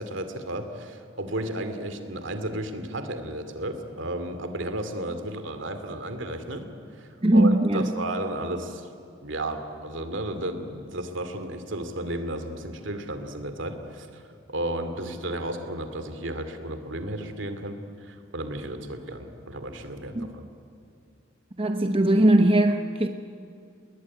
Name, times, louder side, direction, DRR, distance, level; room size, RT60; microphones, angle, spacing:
voice 1, 0.0-6.7 6.9-8.9 9.2-14.2 14.5-20.4, right 1 dB, 65° right, 8 dB, 2.7 m, -33 dB
voice 2, 7.2-7.9 20.2-20.3 21.6-23.1, right 1 dB, 25° right, 6 dB, 0.9 m, -20 dB
30.0 x 20.0 x 9.7 m, 2.5 s
head